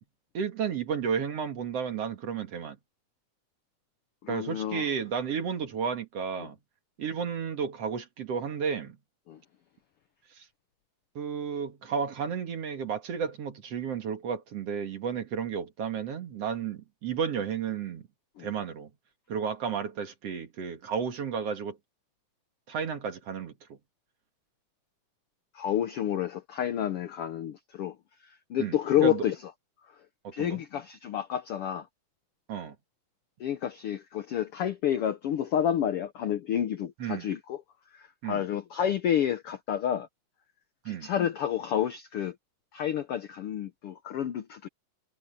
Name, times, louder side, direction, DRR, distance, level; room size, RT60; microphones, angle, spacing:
voice 1, 0.3-2.8 4.3-6.6 7.0-9.0 10.3-10.5 11.2-18.0 18.4-18.9 19.3-21.8 22.7-23.8 28.6-28.8 29.0-29.3 30.2-30.6 32.5-32.8 37.0-37.3 38.2-38.4 40.9-41.1, right 7 dB, 55° right, 2.5 m, -32 dB
voice 2, 4.2-4.9 6.4-6.5 9.3-9.4 18.4-18.5 25.5-28.0 28.2-29.4 30.3-31.9 33.4-37.6 37.9-40.1 40.8-42.3 42.7-44.7, left 10 dB, 90° left, 1.2 m, -29 dB
omnidirectional pair, 3.8 m